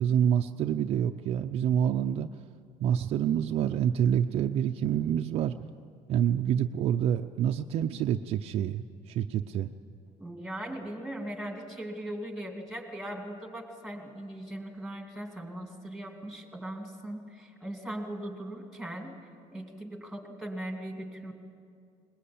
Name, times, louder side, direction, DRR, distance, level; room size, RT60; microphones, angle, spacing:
voice 1, 0.0-2.3 2.8-5.5 6.1-9.7, right 9 dB, 50° right, 6 dB, 0.5 m, -27 dB
voice 2, 10.2-19.2 19.5-21.3, right 1 dB, ahead, 3 dB, 2.5 m, -39 dB
22.0 x 21.0 x 8.6 m, 2.4 s
cardioid pair, 170°, 13 cm